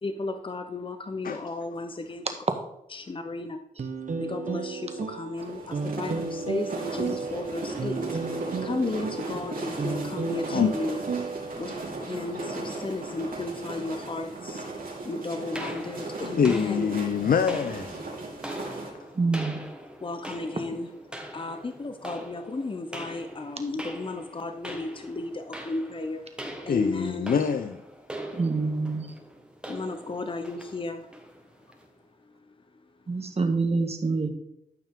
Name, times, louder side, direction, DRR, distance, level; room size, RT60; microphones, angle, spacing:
voice 1, 0.0-2.3 2.9-3.6 4.2-8.2 8.6-11.0 11.5-11.7 12.1-14.7 15.0-16.9 20.0-20.9 21.3-26.3 26.6-27.4 29.7-31.1 32.1-32.8, left 2 dB, 35° left, 7 dB, 0.8 m, -34 dB
sound 1, 3.8-11.9, right 4 dB, 60° right, 1.0 m, -33 dB
sound 2, 5.4-18.9, right 2 dB, 80° right, 3.0 m, -37 dB
sound 3, 15.5-31.9, right 1 dB, 5° right, 1.7 m, -42 dB
voice 2, 16.4-18.0 26.7-27.8, left 7 dB, 80° left, 10 dB, 0.5 m, -25 dB
voice 3, 19.1-19.6 28.3-29.1 33.1-34.3, right 3 dB, 45° right, 6 dB, 1.5 m, -26 dB
13.5 x 5.7 x 3.7 m, 0.82 s
cardioid pair, 65°, 15 cm